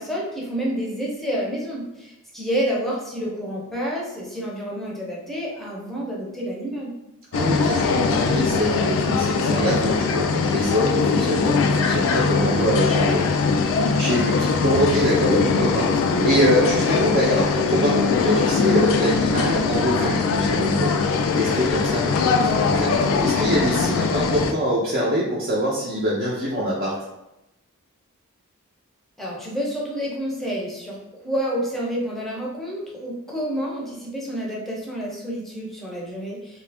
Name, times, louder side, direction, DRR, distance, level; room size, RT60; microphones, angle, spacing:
voice 1, 0.0-6.9 29.2-31.0 31.2-36.6, equal, ahead, -5 dB, 0.7 m, -29 dB
sound 1, 7.3-24.5, left 4 dB, 60° left, 0.3 m, -21 dB
voice 2, 7.3-13.4 14.0-21.0 21.3-26.9, equal, 45° right, -7 dB, 0.7 m, -24 dB
2.8 x 2.4 x 3.4 m, 0.92 s
head